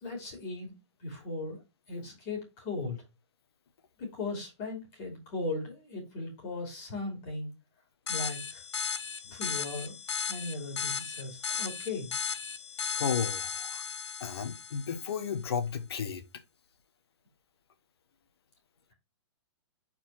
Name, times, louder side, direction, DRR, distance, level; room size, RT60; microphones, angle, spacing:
voice 1, 0.0-0.7 1.0-1.6 1.9-3.0 4.0-7.5 8.1-8.6 9.3-10.0 10.2-12.1, left 3 dB, 25° left, 3.1 m, -37 dB
sound 1, 8.1-15.2, left 6 dB, 80° left, 0.9 m, -36 dB
voice 2, 12.9-13.8 14.2-16.2, left 6 dB, 60° left, 1.3 m, -33 dB
4.6 x 4.5 x 5.7 m
hypercardioid pair, 170°, 15 cm